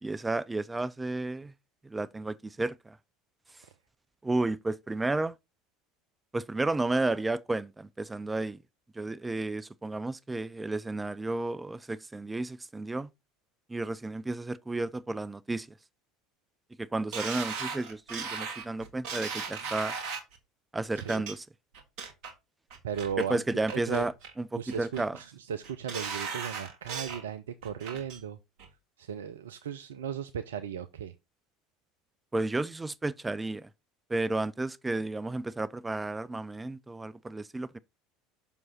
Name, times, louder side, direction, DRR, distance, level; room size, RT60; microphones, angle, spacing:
voice 1, 0.0-1.5 1.8-3.0 4.2-5.3 6.3-8.6 9.0-13.1 13.7-15.7 16.8-19.9 20.7-21.4 23.3-24.1 24.4-25.1 32.3-33.7 34.1-37.8, right 2 dB, 15° right, 0.4 m, -32 dB
sound 1, 17.1-20.4 21.0-21.3 21.7-22.3 22.7-23.3 23.7-24.3 24.7-25.2 25.6-27.2 27.6-28.2 28.6-28.7, right 5 dB, 55° right, 1.8 m, -37 dB
voice 2, 22.8-24.1 24.6-28.4 29.0-31.1, right 8 dB, 70° right, 0.5 m, -37 dB
7.2 x 6.1 x 4.2 m
figure-of-eight pair, 70°, 0 cm